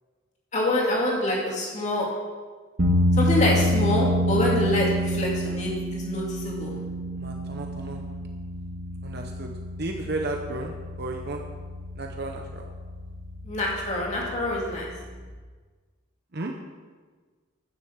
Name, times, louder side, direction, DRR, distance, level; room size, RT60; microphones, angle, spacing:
voice 1, 0.5-2.1 3.2-6.8 13.4-14.9, left 1 dB, 35° left, -3 dB, 2.6 m, -26 dB
sound 1, 2.8-15.3, equal, 80° right, 1.8 m, -28 dB
voice 2, 7.2-8.0 9.0-9.5 9.8-10.7 11.0-11.4 12.0-12.7 16.3-16.5, right 2 dB, 50° right, 2 dB, 0.9 m, -33 dB
9.9 x 7.0 x 7.3 m, 1.4 s
head